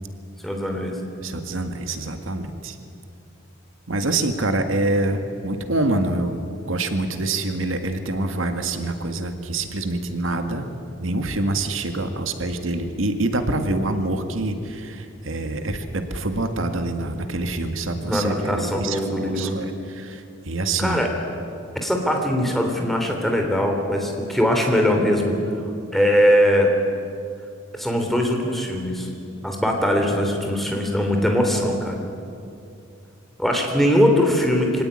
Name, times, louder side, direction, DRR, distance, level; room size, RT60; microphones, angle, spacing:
voice 1, 0.4-1.0 18.1-19.6 20.8-21.1 21.8-25.4 25.9-26.7 27.7-29.1 29.4-32.0 33.4-34.8, equal, ahead, 2 dB, 3.1 m, -21 dB
voice 2, 1.2-2.8 3.9-6.4 6.7-10.7 11.0-21.0, right 2 dB, 85° right, 7 dB, 1.9 m, -26 dB
24.5 x 17.5 x 9.9 m, 2.5 s
head